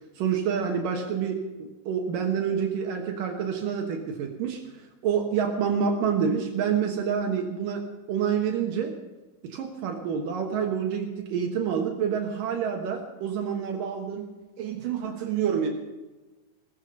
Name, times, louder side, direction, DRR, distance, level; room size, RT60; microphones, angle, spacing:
voice 1, 0.2-4.6 5.0-7.8 8.1-9.0 9.4-14.3 14.6-15.7, right 7 dB, 75° right, 3 dB, 2.9 m, -27 dB
16.5 x 15.0 x 5.4 m, 1.2 s
omnidirectional pair, 4.0 m